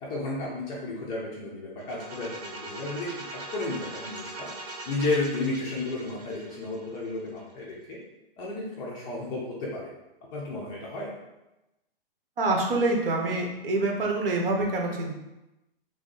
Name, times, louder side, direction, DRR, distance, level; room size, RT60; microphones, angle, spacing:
voice 1, 0.0-4.5 4.9-8.0 8.4-9.9 10.3-11.1, left 2 dB, 15° left, -5 dB, 0.4 m, -33 dB
sound 1, 1.8-7.6, right 2 dB, 45° right, 0.8 m, -41 dB
voice 2, 12.4-15.1, right 2 dB, 70° right, 1 dB, 0.9 m, -26 dB
2.8 x 2.6 x 3.7 m, 0.96 s
hypercardioid pair, 145°, 29 cm